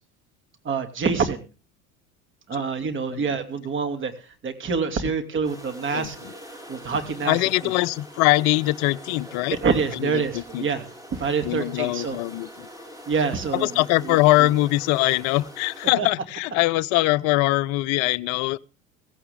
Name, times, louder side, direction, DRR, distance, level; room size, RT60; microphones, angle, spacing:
voice 1, 0.6-1.5 2.5-4.1 4.4-6.2 6.7-7.4 9.6-10.8 11.1-12.2 13.1-13.7 15.9-16.1, right 5 dB, 30° right, 2.8 m, -26 dB
sound 1, 5.4-15.9, equal, 10° right, 5.3 m, -43 dB
voice 2, 5.9-6.3 7.2-9.6 9.9-10.7 11.4-12.7 13.5-18.6, left 18 dB, 40° left, 0.7 m, -22 dB
16.5 x 16.0 x 3.7 m
figure-of-eight pair, 75°, 41 cm